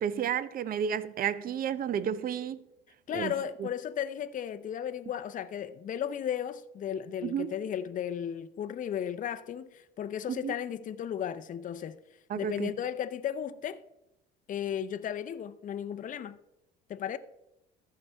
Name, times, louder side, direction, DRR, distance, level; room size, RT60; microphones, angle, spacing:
voice 1, 0.0-2.6 3.1-3.3 3.6-3.7 7.2-7.5 10.3-10.6 12.3-12.8, right 8 dB, 45° right, 0.6 m, -32 dB
voice 2, 3.1-12.0 12.4-13.8 14.5-16.4 16.9-17.2, left 9 dB, 40° left, 0.6 m, -35 dB
14.0 x 5.6 x 3.4 m
supercardioid pair, 80°, 21 cm